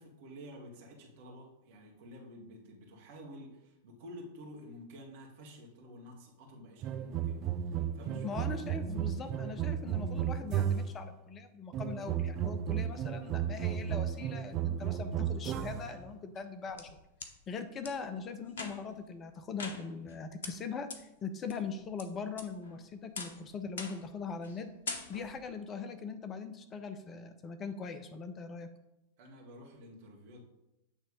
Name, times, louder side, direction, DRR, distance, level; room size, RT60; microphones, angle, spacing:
voice 1, 0.0-8.7 12.7-13.0 29.2-30.4, equal, 50° right, -1 dB, 1.8 m, -50 dB
sound 1, 6.8-11.1 11.7-16.0, right 9 dB, 35° right, 0.5 m, -34 dB
voice 2, 8.2-16.9 17.5-24.7 25.1-28.7, left 5 dB, 25° left, 9 dB, 0.6 m, -41 dB
sound 2, 16.4-17.3 17.8-17.9 18.5-19.0 19.6-20.1 20.4-20.5 20.9-21.0 21.5-22.0 22.4-22.8 23.2-23.4 23.8-24.1 24.4-24.6 24.9-25.4, left 4 dB, 60° left, 0.9 m, -42 dB
8.8 x 3.3 x 5.2 m, 0.91 s
figure-of-eight pair, 90°, 0 cm